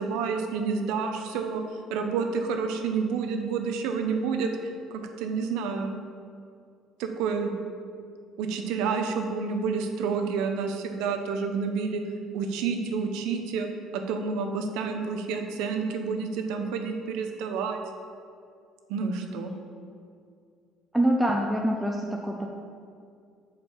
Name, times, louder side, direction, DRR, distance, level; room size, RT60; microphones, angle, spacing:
voice 1, 0.0-1.6 1.9-4.5 4.9-6.0 7.0-7.6 8.4-12.0 12.3-13.7 13.9-17.8 18.9-19.5, right 5 dB, 85° right, 5 dB, 0.9 m, -29 dB
voice 2, 20.9-22.5, right 1 dB, 5° right, 0 dB, 0.5 m, -25 dB
8.2 x 5.1 x 7.4 m, 2.3 s
cardioid pair, 170°, 0 cm